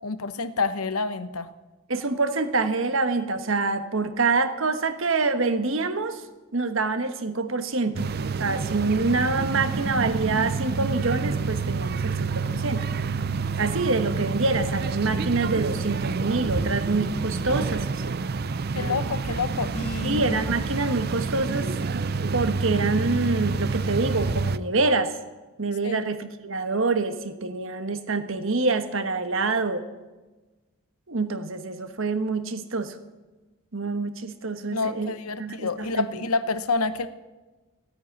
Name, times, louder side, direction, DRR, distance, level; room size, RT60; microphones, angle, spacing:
voice 1, 0.0-1.5 18.7-20.4 25.8-26.0 34.7-37.1, left 4 dB, 85° left, 12 dB, 1.0 m, -28 dB
voice 2, 1.9-6.2 6.5-8.0 8.4-12.9 13.6-18.2 20.0-21.7 22.3-25.1 25.6-29.9 31.1-33.0 33.7-35.1 35.4-36.0, right 3 dB, 65° right, 9 dB, 1.3 m, -26 dB
sound 1, 8.0-24.6, right 4 dB, 45° right, 0.4 m, -28 dB
16.0 x 9.4 x 9.5 m, 1.2 s
head